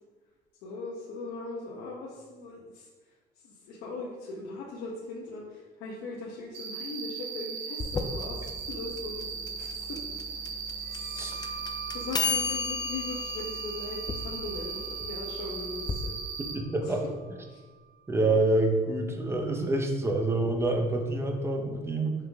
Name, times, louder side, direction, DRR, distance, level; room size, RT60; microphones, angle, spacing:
voice 1, 0.6-2.9 3.4-10.0 11.1-11.3 11.9-16.1 16.8-16.9 17.5-17.6, left 3 dB, 85° left, -4 dB, 1.1 m, -39 dB
Cricket, 6.5-16.5, right 6 dB, 85° right, 1.3 m, -38 dB
sound 1, 7.8-16.0, left 5 dB, 25° left, 0.5 m, -34 dB
sound 2, 10.8-18.1, right 6 dB, 65° right, 1.3 m, -46 dB
voice 2, 16.5-17.0 18.1-22.1, right 2 dB, 15° right, 3 dB, 0.9 m, -27 dB
5.8 x 5.5 x 3.5 m, 1.3 s
cardioid pair, 110°, 17 cm